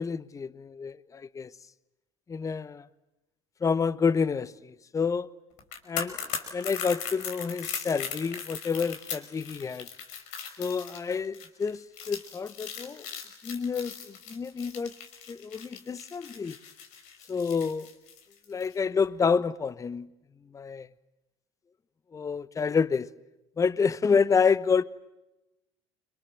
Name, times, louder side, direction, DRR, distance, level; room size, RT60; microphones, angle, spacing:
voice 1, 0.0-1.5 2.3-2.8 3.6-5.3 5.9-6.2 6.5-9.9 10.6-13.1 13.4-14.9 15.3-16.6 17.3-17.9 18.5-20.1 20.5-20.9 22.1-23.1 23.6-24.8, left 5 dB, 20° left, 1.0 m, -28 dB
sound 1, 5.6-18.7 19.0-19.2, left 7 dB, 55° left, 5.2 m, -39 dB
29.5 x 26.0 x 7.6 m
figure-of-eight pair, 65°, 15 cm